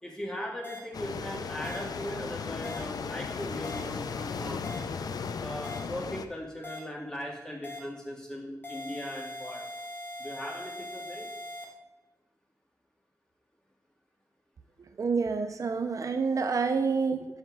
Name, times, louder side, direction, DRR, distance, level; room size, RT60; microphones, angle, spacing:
voice 1, 0.0-4.6 5.4-9.7 10.2-11.3, equal, 10° left, -2 dB, 1.7 m, -39 dB
sound 1, 0.6-0.8 1.6-1.8 2.6-2.8 3.6-3.8 4.6-4.8 5.6-5.8 6.6-6.8 7.6-7.8 8.6-11.6, left 1 dB, 30° left, 1.4 m, -40 dB
sound 2, 0.9-6.3, left 5 dB, 75° left, 0.4 m, -36 dB
voice 2, 15.0-17.3, right 5 dB, 55° right, 8 dB, 0.4 m, -28 dB
7.2 x 4.3 x 5.9 m, 0.96 s
wide cardioid pair, 125°, 7 cm